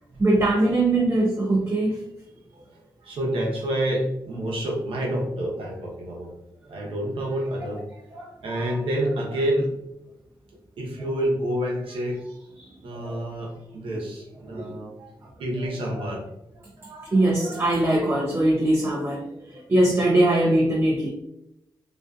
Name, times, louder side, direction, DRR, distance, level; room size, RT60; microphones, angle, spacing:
voice 1, 0.2-2.0 8.1-8.7 13.0-13.2 14.5-14.8 16.8-21.1, right 1 dB, 30° right, 0 dB, 0.4 m, -22 dB
voice 2, 2.7-6.3 6.7-7.8 8.4-9.7 10.8-12.5 12.8-15.1 15.4-16.3, right 1 dB, 80° right, -1 dB, 0.7 m, -28 dB
2.4 x 2.2 x 2.4 m, 0.84 s
cardioid pair, 65°, 9 cm